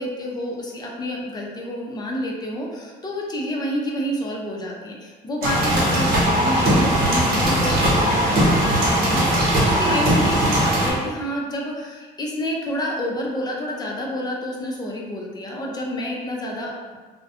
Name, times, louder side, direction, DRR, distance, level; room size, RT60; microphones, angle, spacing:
voice 1, 0.0-17.0, equal, 25° left, -1 dB, 0.5 m, -29 dB
sound 1, 5.4-10.9, right 1 dB, 60° right, 0.8 m, -19 dB
2.3 x 2.1 x 2.7 m, 1.4 s
cardioid pair, 110°, 17 cm